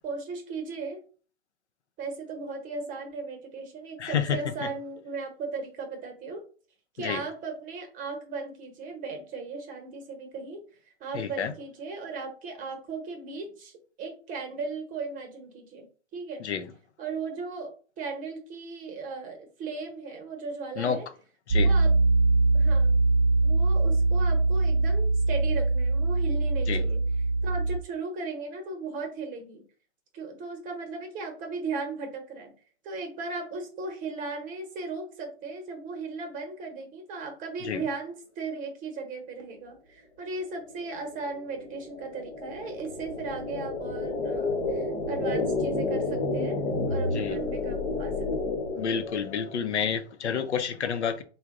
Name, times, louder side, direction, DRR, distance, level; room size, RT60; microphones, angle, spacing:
voice 1, 0.0-1.0 2.0-6.4 6.9-10.6 11.0-15.9 16.1-16.4 17.0-17.7 18.0-21.1 21.6-21.9 22.5-22.9 23.4-27.0 27.4-29.6 30.1-32.5 32.8-46.6 46.9-48.6, right 4 dB, 25° right, 0.9 m, -37 dB
voice 2, 4.0-4.4 7.0-7.2 11.1-11.5 16.4-16.6 20.8-21.0 21.5-21.7 26.7-26.8 37.6-37.8 47.1-47.4 48.7-51.2, left 7 dB, 85° left, 0.7 m, -29 dB
Piano, 21.5-27.8, right 3 dB, 75° right, 0.6 m, -22 dB
sound 1, 40.7-49.6, left 3 dB, 60° left, 1.1 m, -30 dB
3.4 x 2.2 x 3.6 m
hypercardioid pair, 125°, 33 cm